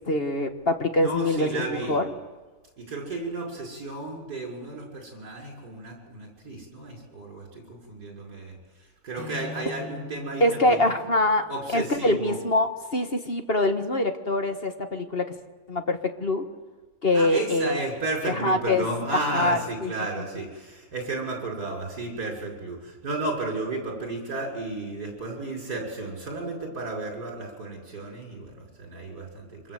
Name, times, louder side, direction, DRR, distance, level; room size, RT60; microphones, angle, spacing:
voice 1, 0.1-2.1 10.4-11.5 11.7-15.3 15.7-16.4 17.0-17.8 18.4-18.9 19.3-19.9, left 1 dB, 30° left, 6 dB, 1.6 m, -24 dB
voice 2, 1.0-2.0 2.8-10.9 11.5-12.3 17.1-29.7, right 2 dB, 50° right, 0 dB, 6.7 m, -33 dB
Acoustic guitar / Strum, 9.1-12.5, left 4 dB, 60° left, 5.8 m, -43 dB
28.0 x 26.0 x 7.8 m, 1.3 s
omnidirectional pair, 2.1 m